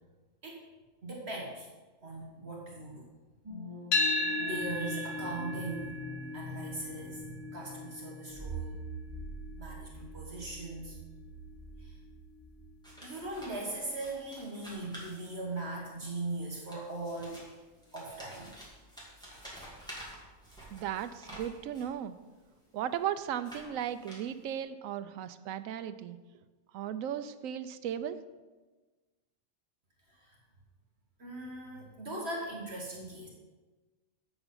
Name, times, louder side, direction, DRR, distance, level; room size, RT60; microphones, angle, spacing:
voice 1, 1.0-1.7 2.0-3.1 4.4-6.1 6.3-8.7 9.6-11.0 11.8-12.0 13.0-17.5 17.9-18.5 30.1-30.4 31.2-33.3, right 2 dB, 50° right, -2 dB, 1.6 m, -40 dB
sound 1, 3.4-13.9 14.3-14.4, right 3 dB, 25° right, 1.0 m, -45 dB
sound 2, 3.9-12.1, left 3 dB, 85° left, 1.3 m, -36 dB
sound 3, 12.8-15.8 16.5-22.0 22.6-24.6, equal, 5° left, 2.4 m, -50 dB
voice 2, 20.7-22.1 22.7-26.2 26.7-28.2, right 10 dB, 75° right, 12 dB, 1.0 m, -36 dB
8.0 x 6.9 x 5.5 m, 1.3 s
omnidirectional pair, 1.4 m